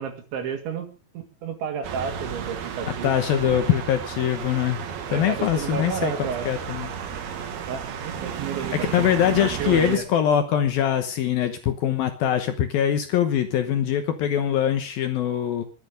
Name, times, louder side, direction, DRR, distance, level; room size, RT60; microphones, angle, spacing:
voice 1, 0.0-3.1 5.1-6.5 7.7-10.0, right 7 dB, 90° right, 5 dB, 4.8 m, -31 dB
sound 1, 1.8-10.0, right 7 dB, 65° right, 3.5 m, -33 dB
voice 2, 3.0-4.8 5.1-6.9 8.9-15.6, left 10 dB, 70° left, 8 dB, 2.5 m, -23 dB
22.0 x 8.9 x 5.1 m, 0.36 s
omnidirectional pair, 5.1 m